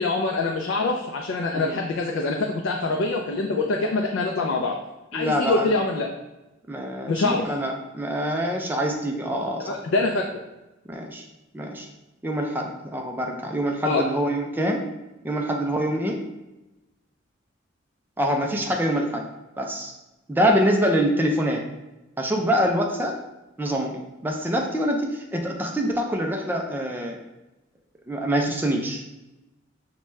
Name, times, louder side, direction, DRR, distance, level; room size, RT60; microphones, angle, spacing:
voice 1, 0.0-4.8 5.1-6.1 7.1-7.5 9.6-10.3 13.8-14.1, left 3 dB, 80° left, 1 dB, 0.4 m, -24 dB
voice 2, 5.1-5.7 6.7-9.7 10.9-11.2 11.5-11.9 12.2-14.8 15.2-16.2 18.2-19.3 19.6-19.9 20.3-21.6 22.2-23.1 23.6-27.2 28.1-29.1, equal, 10° right, 1 dB, 0.3 m, -25 dB
5.8 x 2.2 x 3.1 m, 1.0 s
head